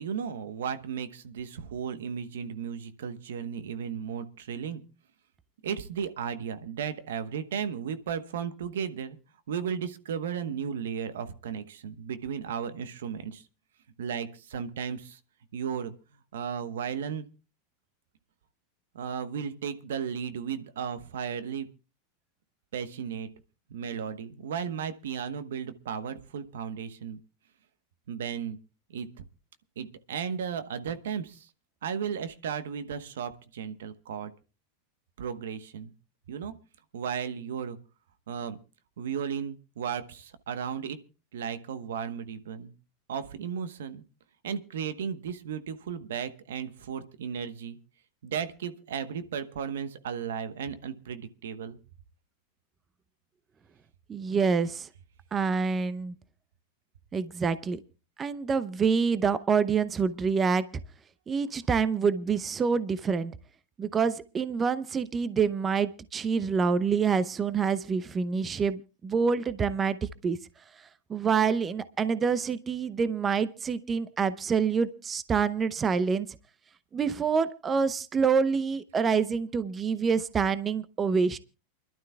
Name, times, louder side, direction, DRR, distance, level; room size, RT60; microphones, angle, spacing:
voice 1, 0.0-4.8 5.6-9.2 9.5-13.4 14.0-15.2 15.5-15.9 16.3-17.2 18.9-21.7 22.7-23.3 23.7-27.2 28.1-28.6 28.9-29.1 29.8-31.5 31.8-34.3 35.2-35.9 36.3-36.5 36.9-37.8 38.3-38.6 39.0-41.0 41.3-42.7 43.1-44.0 44.4-47.8 48.2-51.8, right 7 dB, 80° right, 11 dB, 1.1 m, -35 dB
voice 2, 54.1-54.9 55.3-56.1 57.1-57.8 58.2-60.7 61.3-63.3 63.8-70.4 71.1-76.3 76.9-81.4, right 5 dB, 25° right, 15 dB, 0.7 m, -27 dB
28.5 x 12.0 x 2.3 m, 0.32 s
hypercardioid pair, 105°, 0 cm